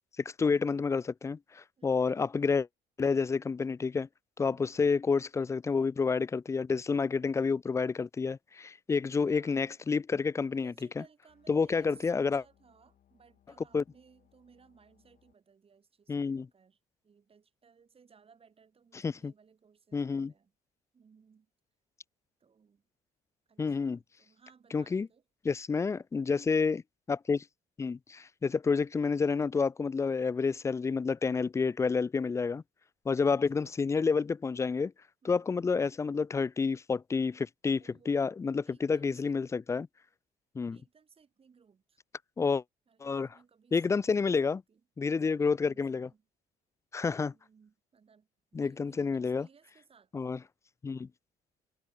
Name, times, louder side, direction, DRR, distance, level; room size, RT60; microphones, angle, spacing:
voice 1, 0.2-2.7 3.0-4.1 4.4-10.7 11.5-12.4 13.7-13.8 16.1-16.5 19.0-19.3 19.9-20.3 23.6-24.0 24.7-25.1 25.4-26.8 27.1-27.4 27.8-32.6 33.1-34.9 35.2-39.9 40.6-40.8 42.4-42.6 43.0-43.3 43.7-44.6 45.0-46.1 46.9-47.3 48.5-49.5 50.1-50.4 50.8-51.1, left 5 dB, 15° left, 0.3 m, -29 dB
voice 2, 1.8-2.1 4.4-4.7 9.3-9.8 10.5-20.5 20.9-21.5 22.4-22.9 23.5-25.2 33.3-33.4 35.2-35.5 37.8-38.3 38.6-39.4 40.7-42.0 42.9-44.8 45.1-46.3 47.0-50.4, right 6 dB, 35° right, 7.3 m, -62 dB
sound 1, 11.3-15.3, left 10 dB, 55° left, 6.1 m, -69 dB
cardioid pair, 110°, 17 cm